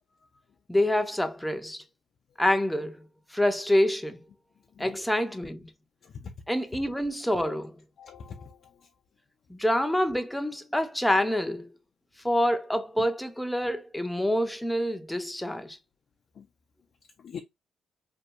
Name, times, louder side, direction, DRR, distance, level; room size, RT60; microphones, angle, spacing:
voice 1, 0.7-1.8 2.4-3.1 3.3-4.2 4.8-5.7 6.5-7.8 9.5-11.7 12.2-15.8, left 1 dB, 5° left, 0.5 m, -27 dB
voice 2, 6.0-6.3 7.3-7.6 8.0-8.7 16.4-16.5 17.2-17.4, left 7 dB, 60° left, 0.4 m, -42 dB
2.7 x 2.2 x 2.5 m
cardioid pair, 75°, 0 cm